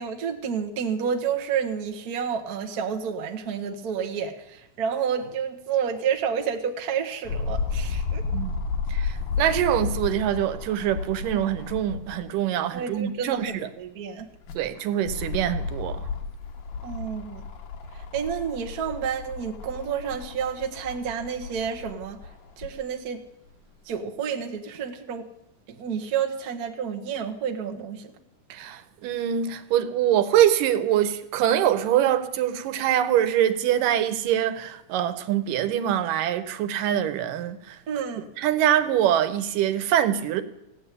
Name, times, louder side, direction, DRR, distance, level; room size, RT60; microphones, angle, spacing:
voice 1, 0.0-8.2 12.7-14.3 16.8-17.4 17.9-22.2 22.6-23.2 23.8-25.3 25.8-28.1 37.9-38.3, right 7 dB, 50° right, 1.1 m, -30 dB
sound 1, 7.3-12.3 12.8-12.9 14.2-22.7 23.5-23.6, left 4 dB, 90° left, 2.9 m, -32 dB
voice 2, 8.9-13.5 14.6-16.1 28.5-37.8 38.4-40.4, right 11 dB, 85° right, 2.6 m, -24 dB
16.5 x 9.7 x 8.4 m
omnidirectional pair, 3.8 m